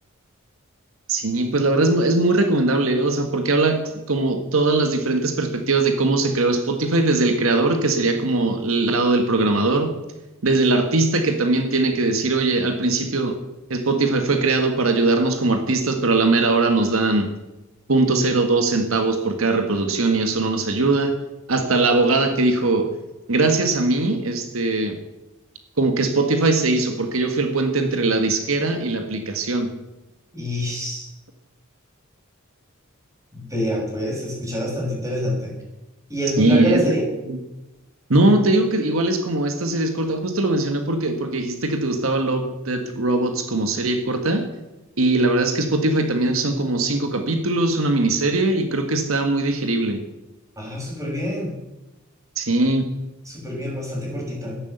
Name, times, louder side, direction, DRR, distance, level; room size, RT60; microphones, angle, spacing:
voice 1, 1.1-9.9 10.4-13.4 13.7-17.3 17.9-21.2 21.5-22.9 23.3-25.0 25.8-29.7 36.4-36.8 37.3-37.4 38.1-44.5 45.0-50.0 52.4-52.9, right 2 dB, 75° right, 6 dB, 1.6 m, -20 dB
voice 2, 30.3-31.1 33.3-35.6 36.1-37.0 50.6-51.5 53.2-54.6, equal, 15° right, -2 dB, 6.4 m, -26 dB
14.0 x 10.5 x 8.0 m, 1.0 s
head